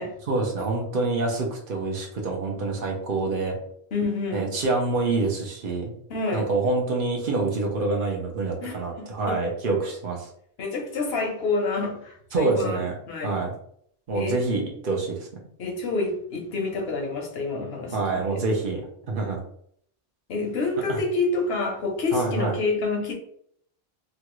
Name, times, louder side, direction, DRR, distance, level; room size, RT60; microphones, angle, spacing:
voice 1, 0.3-3.6 4.3-5.9 6.3-10.3 12.3-12.9 13.2-13.5 14.1-15.3 17.9-18.8 19.1-19.4 20.9-21.0 22.1-22.5, right 3 dB, 60° right, 1 dB, 0.9 m, -26 dB
voice 2, 3.9-4.5 6.1-6.5 8.6-9.4 10.6-13.4 14.1-14.4 15.6-18.4 20.3-23.1, left 3 dB, 75° left, 1 dB, 1.0 m, -28 dB
3.0 x 2.4 x 3.0 m, 0.65 s
omnidirectional pair, 1.0 m